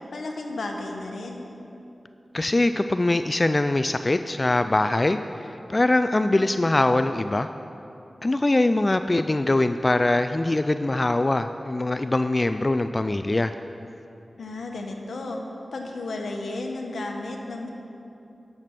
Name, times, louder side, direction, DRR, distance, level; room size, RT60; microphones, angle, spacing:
voice 1, 0.1-1.5 14.4-15.4 15.7-17.7, left 2 dB, 85° left, 2 dB, 1.0 m, -33 dB
voice 2, 2.3-5.2 5.7-7.5 8.2-13.5, left 2 dB, 40° left, 9 dB, 0.3 m, -22 dB
10.5 x 6.7 x 5.9 m, 2.9 s
cardioid pair, 40°, 0 cm